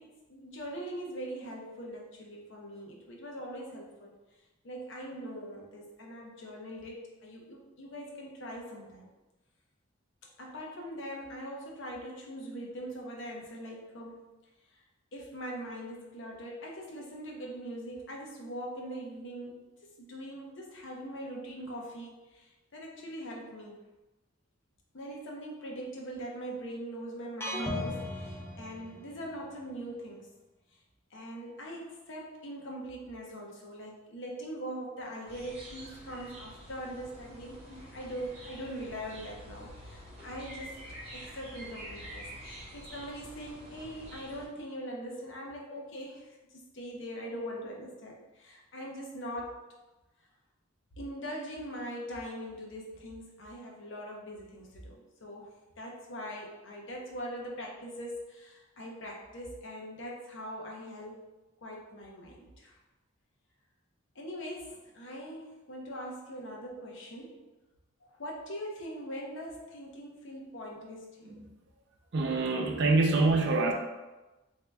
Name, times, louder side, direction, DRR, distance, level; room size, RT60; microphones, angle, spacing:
voice 1, 0.0-4.2 4.6-9.1 10.4-14.2 14.7-14.8 15.1-19.6 19.8-23.8 24.9-30.3 31.1-40.8 41.1-49.6 51.0-61.2 61.6-62.8 64.1-67.4 68.1-71.3, equal, 65° left, -1 dB, 0.7 m, -42 dB
sound 1, 27.4-29.4, left 1 dB, 10° left, 0.5 m, -37 dB
sound 2, 35.3-44.4, equal, 30° right, 1.3 m, -47 dB
voice 2, 72.1-73.7, right 3 dB, 60° right, 1 dB, 0.6 m, -25 dB
3.4 x 2.8 x 3.3 m, 1.1 s
head